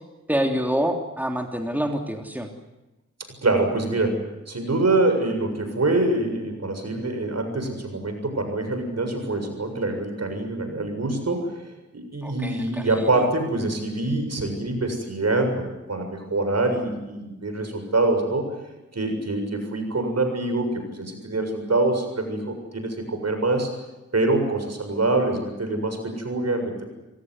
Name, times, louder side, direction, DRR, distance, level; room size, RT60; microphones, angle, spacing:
voice 1, 0.3-2.5 12.2-12.9, equal, 5° right, 3 dB, 3.4 m, -26 dB
voice 2, 3.4-18.5 18.9-23.7 24.1-26.8, right 2 dB, 55° right, 5 dB, 7.2 m, -25 dB
27.0 x 17.5 x 9.7 m, 1.0 s
cardioid pair, 50°, 30 cm